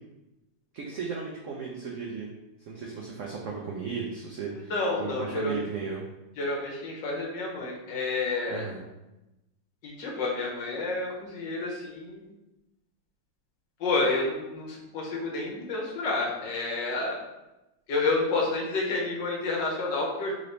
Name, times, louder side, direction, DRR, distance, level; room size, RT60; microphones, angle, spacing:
voice 1, 0.7-2.3 2.7-6.0 8.5-8.8, right 5 dB, 85° right, -1 dB, 0.6 m, -35 dB
voice 2, 4.5-5.5 6.4-8.7 9.8-12.3 13.8-17.2 17.9-20.3, left 3 dB, 70° left, -2 dB, 1.6 m, -29 dB
3.9 x 3.4 x 3.9 m, 0.98 s
omnidirectional pair, 2.0 m